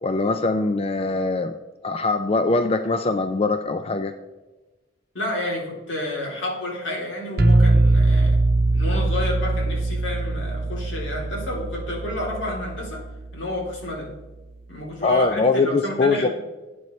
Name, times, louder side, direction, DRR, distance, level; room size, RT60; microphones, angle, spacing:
voice 1, 0.0-1.5 1.8-4.1 15.0-16.3, left 3 dB, 30° left, 8 dB, 0.4 m, -22 dB
voice 2, 5.1-8.4 8.7-13.0 13.3-14.1 14.7-16.3, left 1 dB, 80° left, -2 dB, 3.0 m, -30 dB
sound 1, 7.4-13.2, right 2 dB, 50° right, 0.9 m, -21 dB
12.0 x 8.4 x 3.1 m, 1.2 s
head